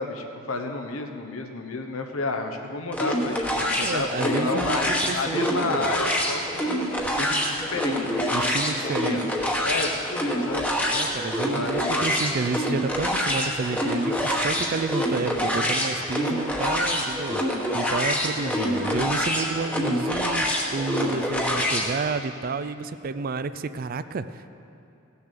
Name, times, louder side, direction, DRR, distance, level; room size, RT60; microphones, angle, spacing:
voice 1, 0.0-6.8 7.2-9.2 9.6-10.7 11.5-12.0 15.2-15.7 18.4-18.5 18.8-19.1, left 3 dB, 85° left, 4 dB, 1.1 m, -31 dB
sound 1, 2.9-21.9, equal, 5° left, 1.0 m, -26 dB
voice 2, 3.8-6.0 8.3-9.4 10.9-17.4 17.7-24.5, right 4 dB, 45° right, 13 dB, 0.4 m, -30 dB
16.5 x 6.9 x 6.7 m, 2.7 s
head